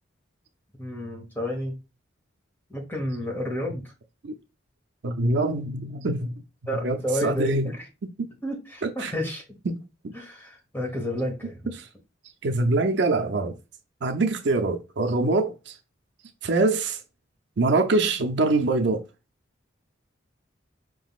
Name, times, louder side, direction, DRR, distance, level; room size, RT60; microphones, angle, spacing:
voice 1, 0.8-1.7 2.7-3.8 6.7-7.9 8.4-9.4 10.1-11.7, equal, 10° left, 1.2 m, -31 dB
voice 2, 5.0-6.3 6.8-7.7 8.8-9.1 9.7-9.8 10.0-10.1 12.4-13.5 14.0-15.7 16.4-17.0 17.6-19.0, right 2 dB, 60° right, 0.5 m, -24 dB
4.8 x 3.8 x 2.4 m
head